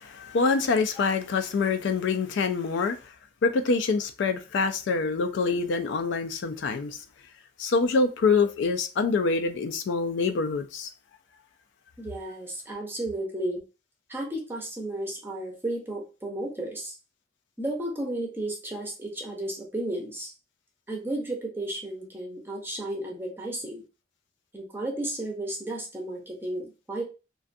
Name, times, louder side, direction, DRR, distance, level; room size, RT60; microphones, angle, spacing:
voice 1, 0.0-3.0 3.4-7.0 7.6-10.9, left 4 dB, 70° left, 0.3 m, -25 dB
voice 2, 12.0-13.6 14.1-16.9 17.6-20.3 20.9-23.8 24.5-27.0, right 1 dB, 10° right, 0.6 m, -33 dB
2.5 x 2.3 x 2.5 m
head